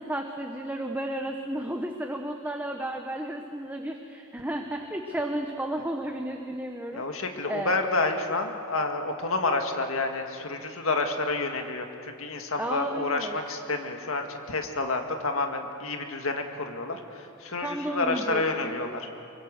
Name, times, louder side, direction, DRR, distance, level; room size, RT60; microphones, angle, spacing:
voice 1, 0.0-7.8 12.6-13.4 17.6-18.8, right 1 dB, 10° right, 3 dB, 1.0 m, -33 dB
voice 2, 6.9-19.1, left 3 dB, 75° left, 4 dB, 2.0 m, -29 dB
24.0 x 23.5 x 6.6 m, 2.6 s
head